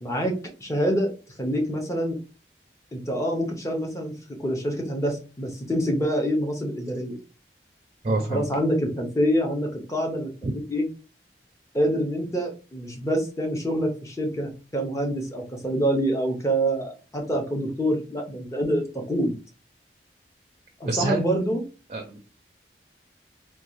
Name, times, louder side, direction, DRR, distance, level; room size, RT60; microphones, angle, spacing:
voice 1, 0.0-1.1 1.4-2.2 2.9-4.1 4.4-7.2 8.3-10.9 11.7-19.3 20.8-21.6, equal, 15° left, 1 dB, 0.7 m, -26 dB
voice 2, 8.0-8.4 10.4-10.5 20.9-21.2 21.9-22.2, right 2 dB, 35° right, 4 dB, 0.4 m, -26 dB
3.9 x 2.3 x 3.0 m, 0.33 s
head